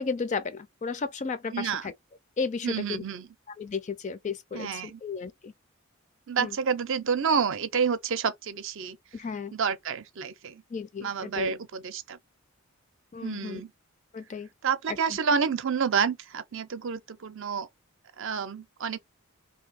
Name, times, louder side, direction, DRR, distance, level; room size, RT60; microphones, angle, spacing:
voice 1, 0.0-1.9 2.4-3.0 3.6-5.5 6.4-6.5 9.1-9.5 10.7-11.5 13.1-13.6 14.1-14.5 14.9-15.0, left 5 dB, 35° left, 0.3 m, -33 dB
voice 2, 1.5-1.9 2.6-3.3 4.5-5.0 6.3-9.0 9.5-10.6 11.0-12.2 13.2-13.7 14.6-17.7 18.2-19.0, right 6 dB, 60° right, 0.5 m, -29 dB
2.7 x 2.6 x 3.9 m
head